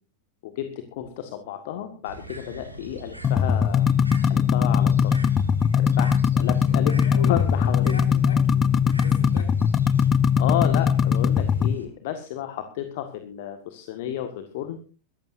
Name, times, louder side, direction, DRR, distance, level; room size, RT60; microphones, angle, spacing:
voice 1, 0.4-3.9 4.3-5.1 5.8-6.9 7.3-8.0 10.3-14.8, left 11 dB, 50° left, 8 dB, 1.7 m, -32 dB
Bird, 2.1-11.9, right 3 dB, 85° right, 2.6 m, -42 dB
sound 1, 3.2-11.7, left 7 dB, 25° left, 0.6 m, -20 dB
voice 2, 6.7-9.6, left 4 dB, 70° left, 5 dB, 4.4 m, -40 dB
23.0 x 14.0 x 2.6 m, 0.36 s
figure-of-eight pair, 90°, 0 cm